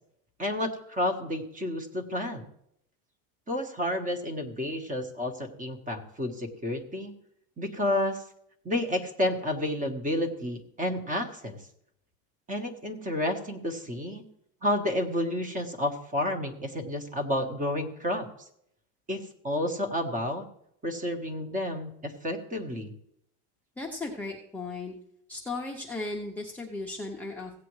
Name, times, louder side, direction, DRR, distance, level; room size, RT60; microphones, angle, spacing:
voice 1, 0.4-2.4 3.5-7.1 7.6-8.2 8.6-11.6 12.5-14.2 14.6-18.3 19.1-20.5 20.8-22.9, left 1 dB, 20° right, 6 dB, 1.3 m, -30 dB
voice 2, 23.8-24.9 25.3-27.6, left 3 dB, 5° left, -2 dB, 0.7 m, -36 dB
16.0 x 8.4 x 3.2 m, 0.74 s
supercardioid pair, 135°, 44 cm